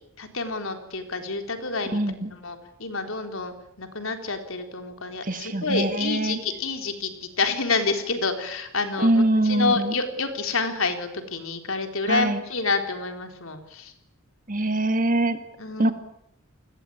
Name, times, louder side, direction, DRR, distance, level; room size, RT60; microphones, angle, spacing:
voice 1, 0.2-2.0 2.3-13.9 15.6-15.9, left 4 dB, 70° left, 6 dB, 3.9 m, -28 dB
voice 2, 1.9-2.3 5.2-6.4 9.0-9.9 12.1-12.4 14.5-15.4 15.8-15.9, right 1 dB, 40° right, 9 dB, 1.9 m, -23 dB
29.5 x 20.5 x 8.7 m, 0.77 s
head